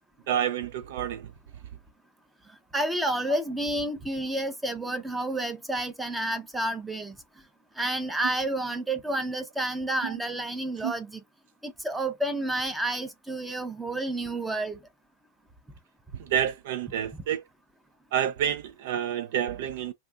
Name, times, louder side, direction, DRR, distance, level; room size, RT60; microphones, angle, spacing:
voice 1, 0.3-1.3 10.0-10.2 10.8-10.9 16.2-17.4 18.1-19.9, right 10 dB, 60° right, 0.3 m, -29 dB
voice 2, 2.7-7.2 7.8-11.2 11.6-14.8 17.1-17.2, right 1 dB, 5° right, 0.5 m, -30 dB
2.7 x 2.3 x 3.3 m
supercardioid pair, 150°, 0 cm